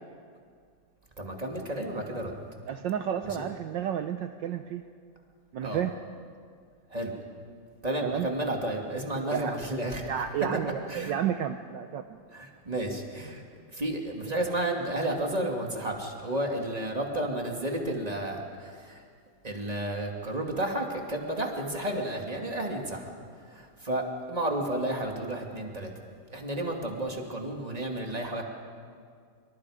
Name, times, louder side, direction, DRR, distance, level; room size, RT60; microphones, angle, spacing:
voice 1, 1.2-2.3 3.2-3.4 5.6-5.8 6.9-7.1 7.8-10.1 10.9-11.1 12.3-13.4 13.7-19.0 19.4-23.1 23.5-25.9 26.3-28.4, right 1 dB, 20° right, 1 dB, 2.3 m, -32 dB
voice 2, 2.7-4.8 5.5-5.9 8.0-8.3 9.2-9.6 10.1-12.0, right 9 dB, 70° right, 7 dB, 1.3 m, -31 dB
26.0 x 25.0 x 5.0 m, 2.1 s
omnidirectional pair, 2.2 m